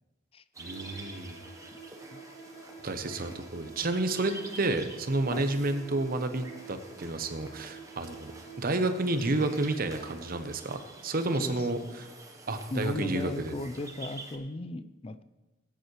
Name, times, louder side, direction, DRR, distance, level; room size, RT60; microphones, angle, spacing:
sound 1, 0.5-14.4, right 2 dB, 15° right, 1.2 m, -48 dB
sound 2, 0.6-10.8, right 5 dB, 75° left, 3.4 m, -49 dB
voice 1, 0.6-1.4 2.8-8.3 8.6-12.1 12.5-13.5, right 2 dB, 50° right, 8 dB, 0.9 m, -30 dB
voice 2, 12.7-15.2, left 1 dB, 30° left, 13 dB, 0.5 m, -36 dB
18.0 x 9.2 x 3.2 m, 1.1 s
head